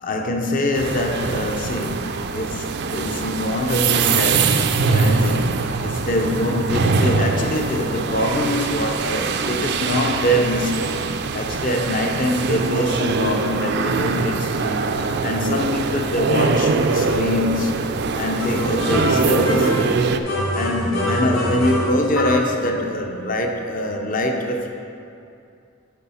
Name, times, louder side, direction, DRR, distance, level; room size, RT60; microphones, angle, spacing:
voice 1, 0.0-20.0 20.5-24.7, left 1 dB, 40° left, 3 dB, 0.7 m, -24 dB
sound 1, 0.7-20.2, right 4 dB, 55° right, 0.4 m, -23 dB
sound 2, 18.4-19.9 20.2-22.5, equal, 75° left, 1.8 m, -24 dB
8.1 x 4.8 x 5.6 m, 2.5 s
head